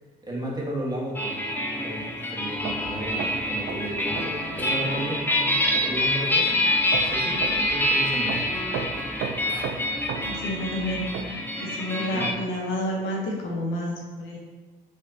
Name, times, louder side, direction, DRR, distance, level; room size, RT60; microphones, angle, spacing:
voice 1, 0.2-1.3 1.7-6.7 7.0-8.5 12.1-12.3, right 1 dB, 20° right, -3 dB, 1.4 m, -33 dB
sound 1, 1.1-12.3, left 1 dB, 10° left, 0.8 m, -26 dB
sound 2, 2.6-11.2, right 6 dB, 65° right, 0.5 m, -36 dB
voice 2, 10.2-11.1 11.6-14.4, equal, 70° left, -1 dB, 0.9 m, -30 dB
5.1 x 3.6 x 2.7 m, 1.3 s
hypercardioid pair, 45°, 21 cm